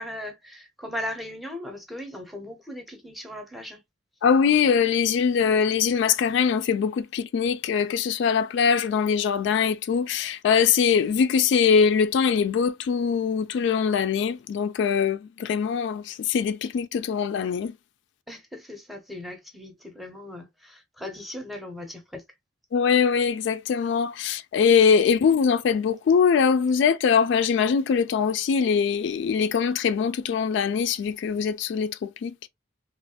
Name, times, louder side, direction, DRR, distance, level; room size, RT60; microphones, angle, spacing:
voice 1, 0.0-3.8 18.3-22.2, left 1 dB, ahead, 0.7 m, -38 dB
voice 2, 4.2-17.7 22.7-32.4, left 6 dB, 65° left, 0.3 m, -22 dB
3.1 x 2.4 x 2.7 m
head